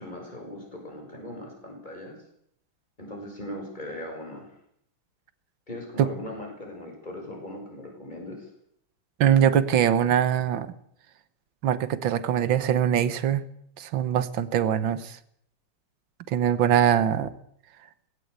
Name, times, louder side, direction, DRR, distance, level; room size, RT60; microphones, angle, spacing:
voice 1, 0.0-2.2 3.0-4.5 5.7-8.5, left 1 dB, 20° left, 2 dB, 6.4 m, -39 dB
voice 2, 9.2-10.7 11.6-13.4 13.8-15.2 16.3-17.3, right 9 dB, 65° right, 14 dB, 1.8 m, -22 dB
19.0 x 18.0 x 8.2 m, 0.71 s
omnidirectional pair, 2.4 m